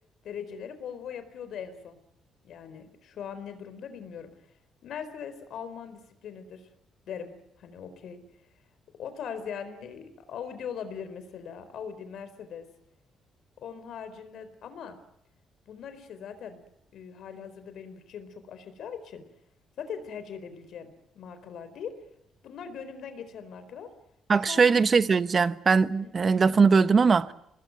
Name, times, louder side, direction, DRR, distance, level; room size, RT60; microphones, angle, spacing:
voice 1, 0.2-2.0 2.4-4.3 4.8-6.7 7.1-8.2 9.0-12.7 13.6-15.0 15.7-16.6 16.9-19.2 19.8-22.0 22.4-23.9 24.5-24.7 26.0-26.1, left 7 dB, 70° left, 4.2 m, -40 dB
voice 2, 24.3-27.3, right 5 dB, 40° right, 1.2 m, -21 dB
25.5 x 20.0 x 9.3 m
cardioid pair, 90°, 0 cm